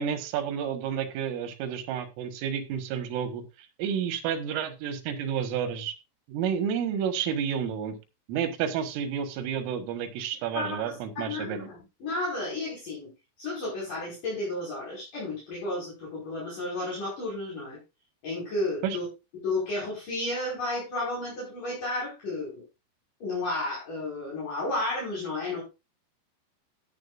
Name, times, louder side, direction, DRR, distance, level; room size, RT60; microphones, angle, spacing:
voice 1, 0.0-3.4 3.8-5.9 6.3-8.0 8.3-11.7 18.8-19.0, right 8 dB, 85° right, 9 dB, 4.1 m, -30 dB
voice 2, 10.5-13.1 13.4-17.8 18.2-19.1 19.4-22.6 23.2-25.6, left 2 dB, 40° left, -6 dB, 6.6 m, -32 dB
14.0 x 10.0 x 2.5 m, 0.27 s
omnidirectional pair, 5.7 m